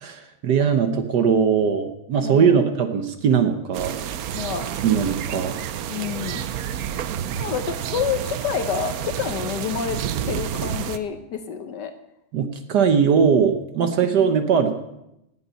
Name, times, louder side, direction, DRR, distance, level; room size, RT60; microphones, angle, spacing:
voice 1, 0.0-3.9 4.8-5.5 12.3-14.7, right 7 dB, 60° right, 8 dB, 1.2 m, -20 dB
voice 2, 2.2-2.7 4.3-4.7 5.9-6.4 7.3-10.0 10.3-11.9, left 7 dB, 60° left, 8 dB, 1.3 m, -28 dB
sound 1, 3.7-11.0, right 9 dB, 90° right, 0.8 m, -29 dB
18.0 x 8.2 x 5.6 m, 0.86 s
omnidirectional pair, 2.3 m